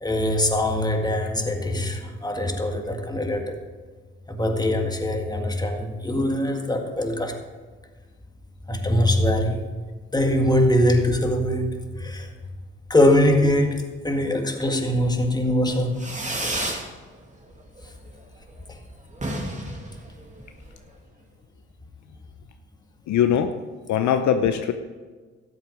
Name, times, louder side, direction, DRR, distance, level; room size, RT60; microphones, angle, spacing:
voice 1, 0.0-3.6 4.3-7.4 8.7-9.6 10.1-12.3 12.9-16.1 17.8-17.9 18.7-18.8, left 1 dB, 10° left, 4 dB, 1.9 m, -22 dB
Fireworks, 15.9-16.9 17.2-17.8 18.1-18.2 18.4-18.5 18.8-18.9 19.1-20.8, right 1 dB, 25° right, 2.3 m, -31 dB
voice 2, 23.1-23.5 23.9-24.7, left 9 dB, 65° left, 7 dB, 0.7 m, -21 dB
13.0 x 8.1 x 5.1 m, 1.4 s
hypercardioid pair, 50°, 32 cm